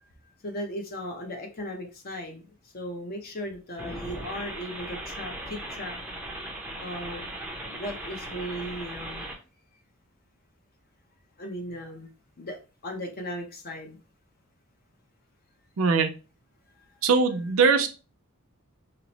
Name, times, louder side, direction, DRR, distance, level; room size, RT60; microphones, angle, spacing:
voice 1, 0.4-5.9 6.8-7.3 7.7-9.3 11.4-12.1 12.4-14.0, equal, 45° left, 3 dB, 0.6 m, -37 dB
sound 1, 3.8-9.4, right 1 dB, 10° right, 0.5 m, -38 dB
voice 2, 15.8-16.1 17.0-17.9, right 5 dB, 65° right, 7 dB, 0.5 m, -21 dB
2.9 x 2.0 x 3.9 m, 0.33 s
head